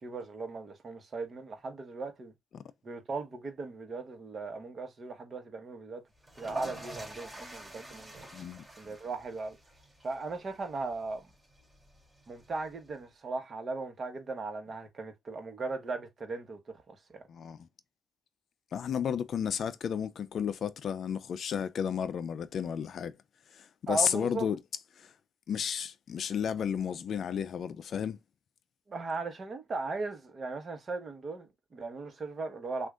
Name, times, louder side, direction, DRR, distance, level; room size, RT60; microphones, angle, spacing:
voice 1, 0.0-2.3 2.8-6.0 6.4-8.3 8.8-9.6 10.0-11.3 12.3-16.6 16.9-17.2 23.9-24.5 28.9-32.9, right 3 dB, 40° right, 1.2 m, -38 dB
sound 1, 6.2-13.0, right 1 dB, 20° right, 2.7 m, -46 dB
voice 2, 8.3-8.6 17.3-17.7 18.7-23.1 23.5-24.6 25.0-25.1 25.5-28.2, left 8 dB, 60° left, 0.4 m, -32 dB
6.1 x 2.5 x 2.5 m
cardioid pair, 90°, 0 cm